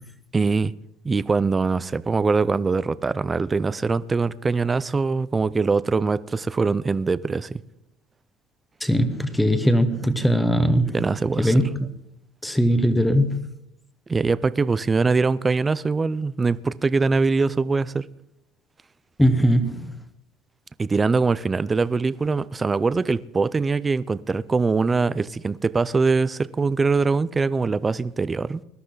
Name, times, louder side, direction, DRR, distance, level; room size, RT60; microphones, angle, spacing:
voice 1, 0.3-0.7 1.0-7.6 10.9-11.6 14.1-18.0 20.8-28.6, right 4 dB, 15° right, 0.5 m, -22 dB
voice 2, 8.8-11.0 11.4-11.9 12.4-13.5 19.2-19.9, equal, 5° left, 1.3 m, -20 dB
21.0 x 12.5 x 4.0 m
cardioid pair, 145°, 0 cm